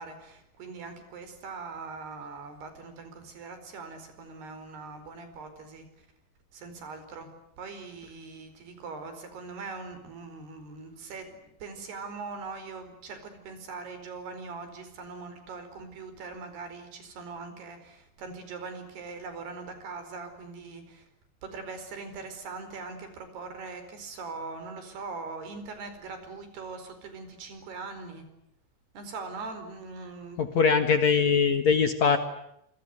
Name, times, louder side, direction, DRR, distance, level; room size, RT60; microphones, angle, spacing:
voice 1, 0.0-5.9 6.5-7.3 7.6-21.1 21.4-28.2 28.9-30.4, right 4 dB, 65° right, 9 dB, 6.6 m, -41 dB
voice 2, 30.4-32.2, left 5 dB, 55° left, 8 dB, 2.3 m, -22 dB
27.5 x 26.0 x 8.0 m, 0.77 s
omnidirectional pair, 4.9 m